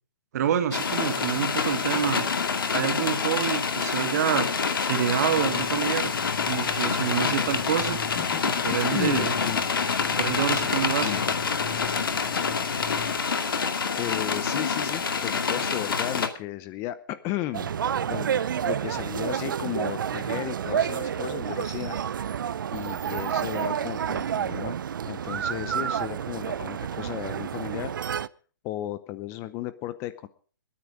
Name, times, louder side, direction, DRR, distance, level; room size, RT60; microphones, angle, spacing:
voice 1, 0.3-2.3 2.7-4.5 4.9-6.1 6.5-8.0 8.4-9.3 10.2-11.2, right 9 dB, 45° right, 9 dB, 1.9 m, -27 dB
sound 1, 0.7-16.3, left 5 dB, 75° left, 2.3 m, -27 dB
sound 2, 5.3-13.2, left 10 dB, 45° left, 1.5 m, -39 dB
voice 2, 7.9-8.4 8.7-9.7 11.0-11.2 14.0-17.7 18.0-22.0 22.7-24.8 25.1-27.9 28.6-30.3, left 14 dB, 20° left, 14 dB, 0.8 m, -34 dB
sound 3, 17.5-28.3, right 8 dB, 65° right, 0.6 m, -29 dB
21.5 x 9.9 x 5.0 m, 0.41 s
hypercardioid pair, 150°, 12 cm